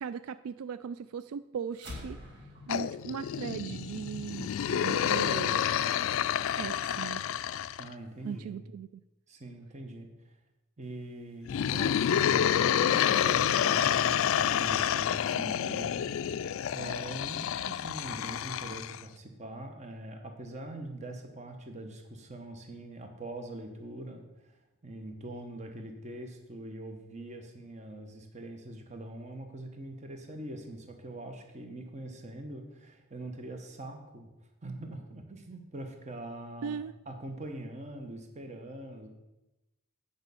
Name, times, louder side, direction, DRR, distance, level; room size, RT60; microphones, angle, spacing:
voice 1, 0.0-2.2 2.7-5.7 6.6-7.2 8.2-9.0 36.6-36.9, right 7 dB, 80° right, 14 dB, 0.3 m, -38 dB
sound 1, 1.7-6.4, left 2 dB, 50° right, 2.2 m, -47 dB
sound 2, 2.7-7.9 11.5-19.0, left 9 dB, 65° left, 0.3 m, -29 dB
voice 2, 7.8-8.6 9.3-10.4 10.8-34.3 34.6-39.1, right 1 dB, 30° right, 4 dB, 1.0 m, -43 dB
8.8 x 5.3 x 6.9 m, 0.99 s
head